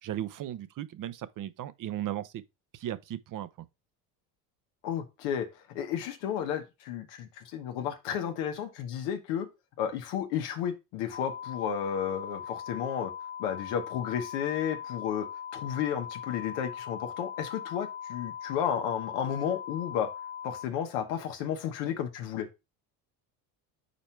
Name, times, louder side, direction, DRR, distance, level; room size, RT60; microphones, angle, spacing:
voice 1, 0.0-2.4 2.7-3.5, right 12 dB, 45° right, 0.7 m, -36 dB
voice 2, 4.8-9.5 9.8-13.1 13.4-15.3 15.5-20.1 20.4-22.5, left 9 dB, 75° left, 1.2 m, -32 dB
sound 1, 11.1-20.7, left 8 dB, 15° left, 0.7 m, -40 dB
5.2 x 4.3 x 4.5 m
supercardioid pair, 80°, 45 cm